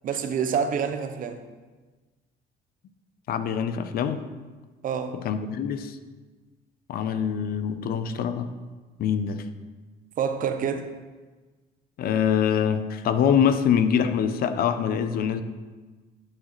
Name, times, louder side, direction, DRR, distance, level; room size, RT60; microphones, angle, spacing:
voice 1, 0.0-1.4 4.8-5.2 10.2-10.9, right 7 dB, 55° right, 8 dB, 0.7 m, -27 dB
voice 2, 3.3-4.2 5.2-6.0 6.9-8.5 9.0-9.4 12.0-15.4, left 8 dB, 60° left, 10 dB, 0.6 m, -24 dB
11.5 x 6.4 x 3.1 m, 1.3 s
cardioid pair, 110°, 17 cm